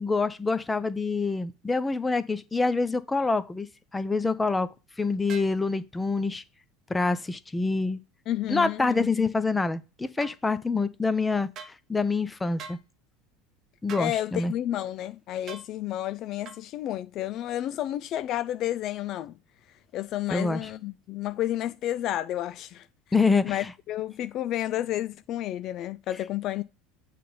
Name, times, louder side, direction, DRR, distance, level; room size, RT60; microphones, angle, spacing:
voice 1, 0.0-3.7 3.9-4.7 5.0-6.4 6.9-8.0 8.5-11.5 11.9-12.8 13.8-14.5 20.3-20.7 23.1-23.7, left 3 dB, 15° left, 0.7 m, -26 dB
sound 1, 5.3-5.6 10.2-10.4 11.5-11.8 12.6-12.8 13.9-14.1 15.5-15.7 16.4-16.6, right 6 dB, 45° right, 1.2 m, -42 dB
voice 2, 8.3-9.2 14.0-19.4 19.9-22.9 23.4-26.6, left 13 dB, 50° left, 0.4 m, -31 dB
8.5 x 3.4 x 5.4 m
hypercardioid pair, 75°, 0 cm